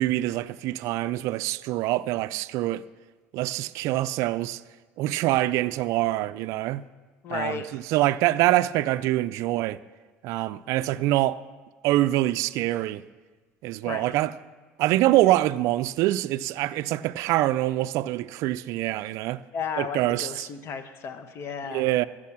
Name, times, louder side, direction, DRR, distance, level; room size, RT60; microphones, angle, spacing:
voice 1, 0.0-2.8 3.3-4.6 5.0-6.8 7.3-9.8 10.2-11.4 11.8-13.0 13.6-14.3 14.8-19.4 19.8-20.5 21.7-22.1, right 16 dB, 65° right, 0.3 m, -25 dB
voice 2, 7.2-7.7 13.8-14.1 19.5-22.0, left 6 dB, 50° left, 1.0 m, -34 dB
14.5 x 6.3 x 6.0 m
supercardioid pair, 100°, 6 cm